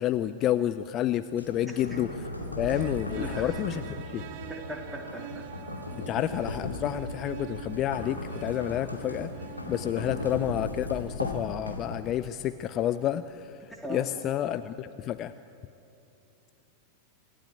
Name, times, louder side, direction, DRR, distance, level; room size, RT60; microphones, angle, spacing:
voice 1, 0.0-2.1 2.6-3.8 4.1-4.2 6.0-9.3 9.7-15.3, left 12 dB, 35° left, 13 dB, 0.6 m, -30 dB
sound 1, 1.3-12.3, left 1 dB, 85° left, 2.4 m, -37 dB
sound 2, 2.7-10.5, right 10 dB, 45° right, 1.3 m, -45 dB
voice 2, 3.2-3.8 4.5-5.5 10.0-10.3 13.7-14.1, equal, 5° right, 0 dB, 3.5 m, -39 dB
27.0 x 15.0 x 8.9 m, 2.8 s
figure-of-eight pair, 90°, 0 cm